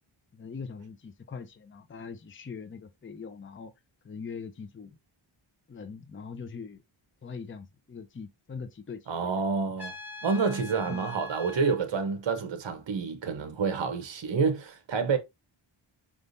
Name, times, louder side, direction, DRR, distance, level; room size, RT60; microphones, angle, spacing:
voice 1, 0.3-3.7 4.0-5.0 5.7-6.8 7.2-9.4 10.8-11.1, left 5 dB, 25° left, 0.6 m, -42 dB
voice 2, 9.1-9.9 10.2-15.2, right 5 dB, 60° right, 1.0 m, -28 dB
Trumpet, 9.8-11.8, left 4 dB, 5° right, 2.1 m, -43 dB
4.9 x 3.5 x 2.6 m
wide cardioid pair, 80°, 50 cm